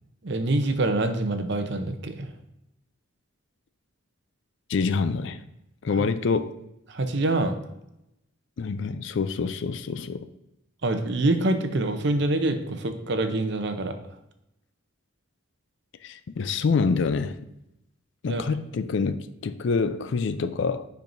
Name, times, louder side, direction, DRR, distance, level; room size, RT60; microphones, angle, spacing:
voice 1, 0.2-2.3 6.9-7.6 10.8-13.9 18.3-18.4, right 2 dB, 55° right, 0.7 m, -25 dB
voice 2, 4.7-5.4 5.8-6.5 8.6-10.3 16.0-17.4 18.2-20.9, left 4 dB, 60° left, 0.4 m, -26 dB
10.5 x 4.6 x 2.6 m
head